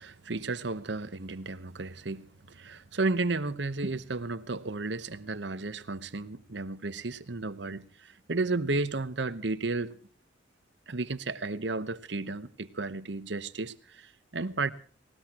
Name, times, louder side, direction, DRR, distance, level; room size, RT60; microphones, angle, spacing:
voice 1, 0.0-10.0 10.9-14.7, right 3 dB, 70° right, 1.0 m, -33 dB
19.5 x 19.0 x 3.0 m
head